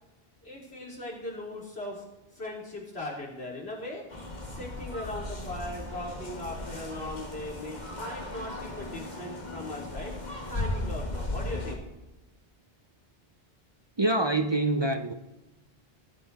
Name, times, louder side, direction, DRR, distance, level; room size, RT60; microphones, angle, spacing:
voice 1, 0.4-2.0 2.3-4.1 4.4-10.1 10.5-11.8, left 1 dB, 80° left, 3.8 m, -39 dB
sound 1, 4.1-11.8, left 2 dB, 45° left, 1.9 m, -36 dB
voice 2, 14.0-15.1, right 2 dB, 30° right, 0.6 m, -25 dB
21.5 x 8.2 x 4.1 m
omnidirectional pair, 1.0 m